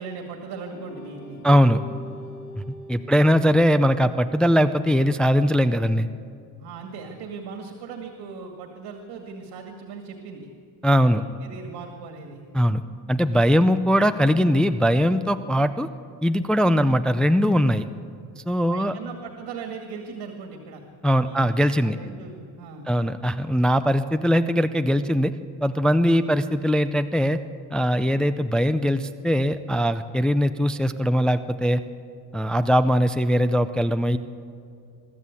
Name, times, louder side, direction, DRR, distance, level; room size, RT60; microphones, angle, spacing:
voice 1, 0.0-1.4 3.0-3.2 6.6-10.5 11.0-12.4 13.5-13.7 16.5-16.7 18.6-20.8 21.1-22.9 26.1-26.3 28.1-28.3, right 5 dB, 85° right, 3 dB, 2.3 m, -39 dB
sound 1, 0.7-5.4, left 1 dB, 45° left, 2.8 m, -44 dB
voice 2, 1.4-1.8 2.5-6.1 10.8-11.2 12.5-12.8 13.1-15.9 16.2-17.9 18.4-18.9 21.0-22.0 22.9-25.3 25.6-27.4 27.7-31.8 32.3-34.2, equal, ahead, 9 dB, 0.4 m, -21 dB
23.0 x 14.0 x 8.4 m, 2.4 s
cardioid pair, 145°, 39 cm